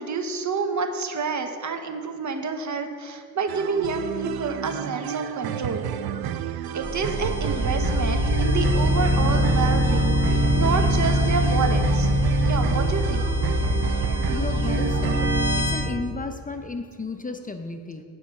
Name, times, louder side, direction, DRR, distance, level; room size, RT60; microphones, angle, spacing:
voice 1, 0.0-5.8 6.7-12.1 12.4-13.3, right 4 dB, 50° right, 7 dB, 1.0 m, -28 dB
sound 1, 3.5-15.3, right 9 dB, 80° right, 0.5 m, -31 dB
sound 2, 6.8-15.8, equal, 30° right, 1.7 m, -22 dB
voice 2, 14.3-15.3 15.6-18.0, left 3 dB, 20° left, 7 dB, 0.6 m, -33 dB
8.8 x 4.8 x 7.0 m, 2.1 s
cardioid pair, 65°, 37 cm